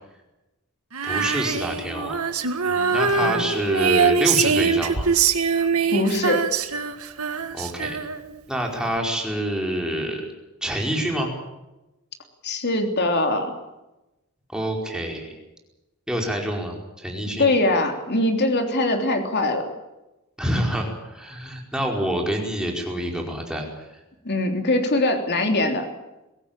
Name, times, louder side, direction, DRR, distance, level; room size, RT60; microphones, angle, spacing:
Female singing, 0.9-8.4, right 5 dB, 80° right, 1.9 m, -23 dB
voice 1, 1.0-2.2 2.6-5.1 7.5-8.0 8.5-10.2 10.6-11.3 14.5-15.4 16.1-17.5 20.4-24.0, equal, 5° right, 0 dB, 4.9 m, -27 dB
voice 2, 5.9-6.5 12.4-13.5 17.4-19.6 24.2-25.8, left 2 dB, 50° left, 5 dB, 3.3 m, -22 dB
23.0 x 17.5 x 8.9 m, 0.99 s
head